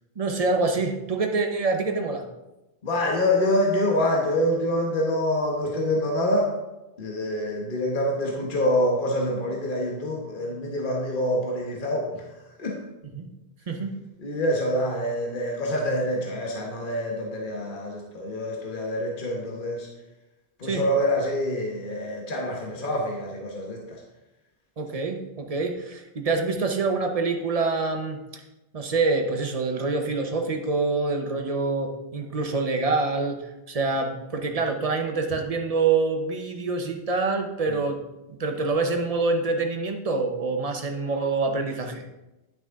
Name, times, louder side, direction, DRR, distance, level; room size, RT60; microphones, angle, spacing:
voice 1, 0.2-2.2 13.1-13.3 13.7-13.9 20.6-20.8 24.8-28.4 28.7-38.0 38.3-42.0, right 3 dB, 40° right, 4 dB, 1.0 m, -26 dB
voice 2, 2.8-6.5 7.0-12.2 12.6-12.8 14.2-19.9 20.6-24.0 37.7-37.8, left 1 dB, 55° left, -1 dB, 1.4 m, -26 dB
10.5 x 6.0 x 3.7 m, 0.99 s
omnidirectional pair, 1.0 m